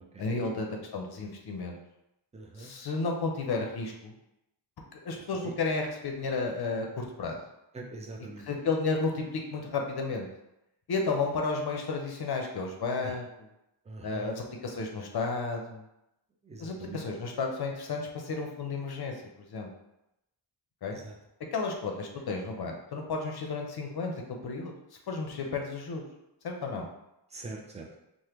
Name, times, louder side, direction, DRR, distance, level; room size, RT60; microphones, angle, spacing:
voice 1, 0.2-1.8 2.6-4.1 4.9-7.4 8.4-10.3 10.9-13.5 14.0-15.8 16.6-19.2 19.5-19.7 20.8-21.0 21.5-24.1 24.4-24.7 25.1-26.0 26.4-26.9, left 4 dB, 55° left, 2 dB, 0.6 m, -32 dB
voice 2, 2.3-2.7 5.4-5.5 7.7-8.5 13.9-14.3 16.5-17.0 21.0-21.1 27.3-27.9, right 3 dB, 15° right, 0 dB, 0.4 m, -43 dB
3.4 x 2.1 x 2.9 m, 0.87 s
wide cardioid pair, 115°, 45 cm